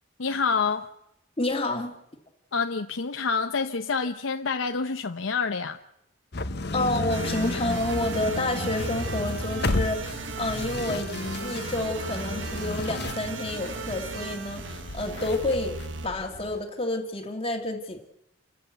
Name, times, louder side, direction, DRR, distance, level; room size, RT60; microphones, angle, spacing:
voice 1, 0.2-0.9 2.5-5.8, left 5 dB, 80° left, 0.8 m, -27 dB
voice 2, 1.4-1.9 6.7-11.1 11.4-15.8 16.0-18.0, left 2 dB, 30° left, 2.1 m, -29 dB
sound 1, 6.3-16.6, left 2 dB, 55° left, 1.1 m, -33 dB
sound 2, 7.1-16.1, right 4 dB, 65° right, 1.1 m, -36 dB
28.5 x 13.5 x 8.1 m
head